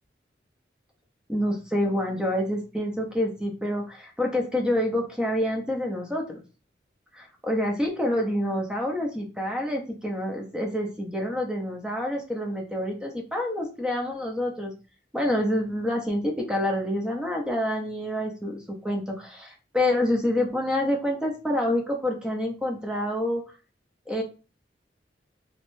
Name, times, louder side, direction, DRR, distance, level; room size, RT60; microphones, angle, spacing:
voice 1, 1.3-6.4 7.1-14.7 15.1-23.4 24.1-24.2, left 1 dB, 5° right, 0 dB, 0.6 m, -27 dB
3.5 x 3.1 x 2.6 m, 0.33 s
head